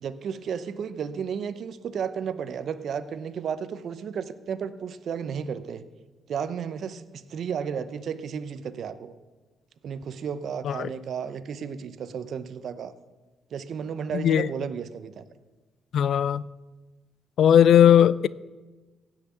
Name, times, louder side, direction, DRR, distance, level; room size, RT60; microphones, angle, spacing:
voice 1, 0.0-5.8 6.3-9.1 9.8-12.9 13.5-15.2, right 7 dB, 60° right, 0.8 m, -33 dB
voice 2, 14.1-14.5 15.9-16.4 17.4-18.3, left 9 dB, 65° left, 0.4 m, -18 dB
16.0 x 5.9 x 8.3 m
cardioid pair, 125°, 0 cm